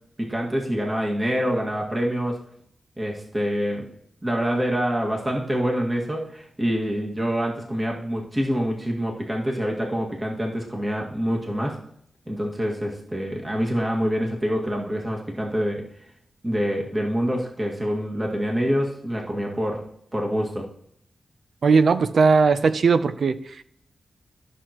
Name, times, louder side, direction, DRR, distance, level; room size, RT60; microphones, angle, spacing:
voice 1, 0.2-2.4 3.0-3.9 4.2-11.8 12.3-15.8 16.4-20.7, equal, 20° right, -1 dB, 1.9 m, -26 dB
voice 2, 21.6-23.6, right 5 dB, 75° right, 12 dB, 0.5 m, -19 dB
13.5 x 6.4 x 3.0 m, 0.69 s
cardioid pair, 70°, 0 cm